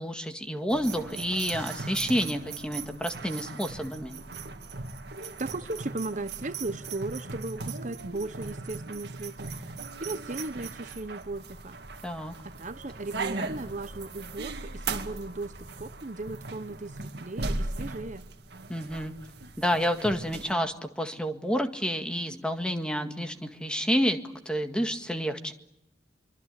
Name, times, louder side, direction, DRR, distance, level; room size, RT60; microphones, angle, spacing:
voice 1, 0.0-4.2 12.0-12.3 18.7-19.1 19.6-24.2 24.5-25.5, equal, 5° left, 6 dB, 1.9 m, -29 dB
sound 1, 0.7-20.5, right 3 dB, 60° right, 2.1 m, -38 dB
voice 2, 5.4-9.5 10.0-11.8 12.4-18.3, right 2 dB, 40° right, 11 dB, 1.0 m, -36 dB
25.5 x 24.5 x 8.4 m, 0.86 s
head